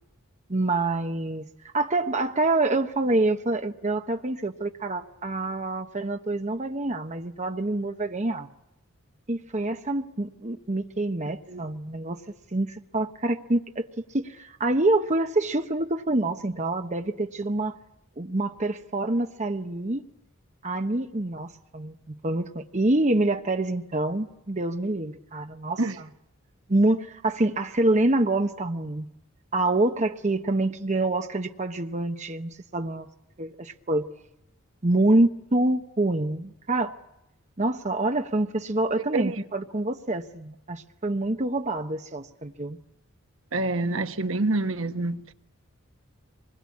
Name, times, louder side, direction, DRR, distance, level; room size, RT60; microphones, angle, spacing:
voice 1, 0.5-1.5 1.7-8.5 9.3-12.2 12.5-13.9 14.1-17.8 18.2-20.0 20.6-26.1 26.7-29.1 29.5-33.1 33.4-34.1 34.8-36.9 37.6-42.8, right 2 dB, 35° right, 1.1 m, -26 dB
voice 2, 11.3-11.6 25.8-26.0 39.1-39.4 43.5-45.3, right 2 dB, 65° right, 1.3 m, -27 dB
26.0 x 21.5 x 8.6 m
head